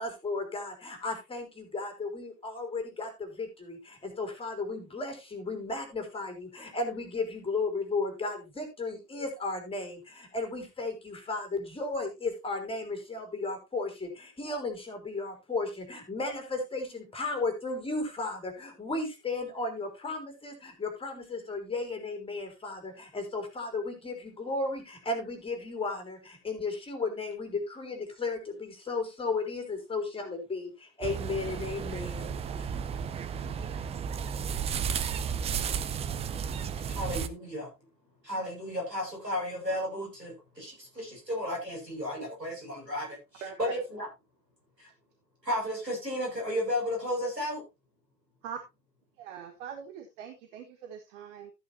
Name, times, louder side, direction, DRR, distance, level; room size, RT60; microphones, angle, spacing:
voice 1, 0.0-32.3 32.6-32.7, left 3 dB, 10° left, 6 dB, 3.8 m, -34 dB
sound 1, 31.0-37.3, right 7 dB, 15° right, 0.6 m, -33 dB
voice 2, 36.9-37.7 38.2-44.1 44.8-44.9 45.4-47.6, left 1 dB, 90° right, 1 dB, 6.9 m, -33 dB
voice 3, 43.4-43.7 48.4-48.6 49.2-51.5, right 8 dB, 45° right, 6 dB, 1.9 m, -42 dB
14.0 x 9.3 x 2.8 m, 0.24 s
figure-of-eight pair, 90°, 48 cm